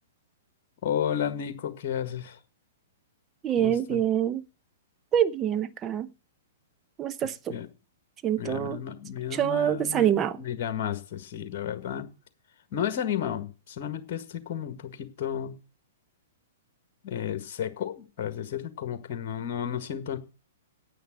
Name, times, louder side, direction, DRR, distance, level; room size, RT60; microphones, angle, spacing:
voice 1, 0.8-2.4 3.6-4.0 7.2-7.7 8.4-10.1 10.4-12.1 12.7-15.6 17.0-20.2, left 9 dB, 45° left, 1.6 m, -32 dB
voice 2, 3.4-4.4 5.1-6.1 7.0-7.5 8.2-8.8 9.3-10.4, right 10 dB, 25° right, 0.8 m, -25 dB
9.3 x 8.7 x 7.5 m
figure-of-eight pair, 110°, 0 cm